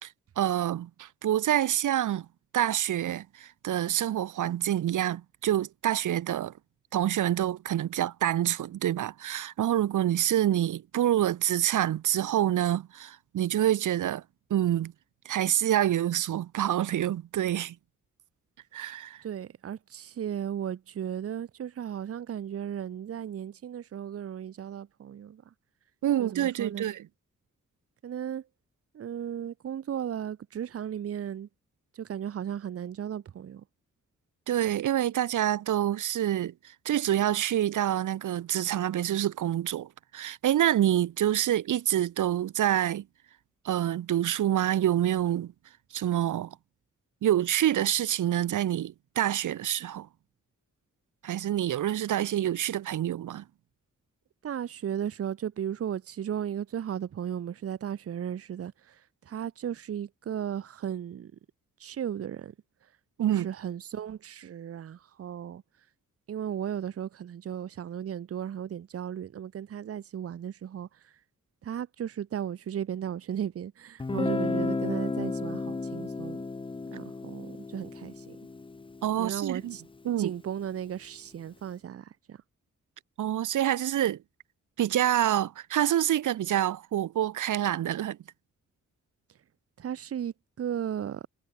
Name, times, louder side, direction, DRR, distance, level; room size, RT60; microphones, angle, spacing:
voice 1, 0.0-2.3 2.5-6.5 6.9-14.2 14.5-14.9 15.2-17.8 18.7-19.2 26.0-27.0 34.5-43.0 43.6-45.5 45.9-46.6 47.2-50.1 51.2-53.4 63.2-63.5 79.0-79.8 80.0-80.3 83.2-84.2 84.8-88.2, right 11 dB, 85° right, 0.8 m, -27 dB
voice 2, 19.2-25.4 26.2-26.9 28.0-28.5 28.9-31.5 31.9-33.6 54.4-61.3 61.8-62.5 63.3-65.6 66.3-71.1 71.6-76.4 76.9-78.4 79.2-79.8 80.2-82.4 89.8-91.3, right 9 dB, 50° right, 0.8 m, -35 dB
Guitar, 74.0-79.8, left 3 dB, 15° left, 0.7 m, -33 dB
wide cardioid pair, 165°, 30 cm